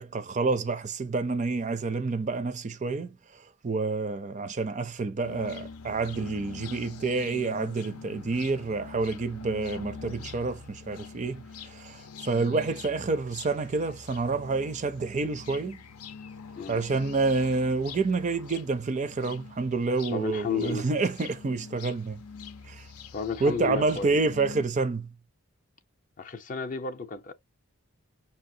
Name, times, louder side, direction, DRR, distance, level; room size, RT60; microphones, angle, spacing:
voice 1, 0.0-15.8 16.7-22.2 22.7-22.9 23.4-25.1, right 3 dB, 35° right, 0.4 m, -28 dB
sound 1, 5.2-24.6, left 5 dB, 80° left, 0.5 m, -44 dB
voice 2, 20.1-20.9 23.1-24.2 26.2-27.3, left 5 dB, 35° left, 0.5 m, -32 dB
5.9 x 2.8 x 2.6 m
head